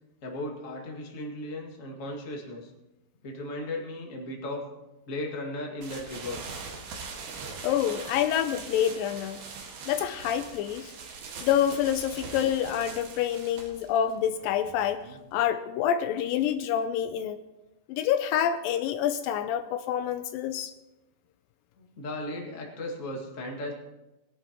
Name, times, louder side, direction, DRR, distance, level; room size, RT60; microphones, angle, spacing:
voice 1, 0.2-2.7 3.2-4.7 5.1-6.4 21.8-23.7, left 1 dB, 30° left, -1 dB, 1.8 m, -36 dB
sound 1, 5.8-15.4, right 4 dB, 80° right, 3.4 m, -42 dB
voice 2, 7.6-9.4 9.9-10.9 11.4-15.0 15.3-17.4 17.9-20.7, left 9 dB, 80° left, 10 dB, 2.2 m, -27 dB
21.0 x 11.0 x 3.0 m, 1.0 s
omnidirectional pair, 4.1 m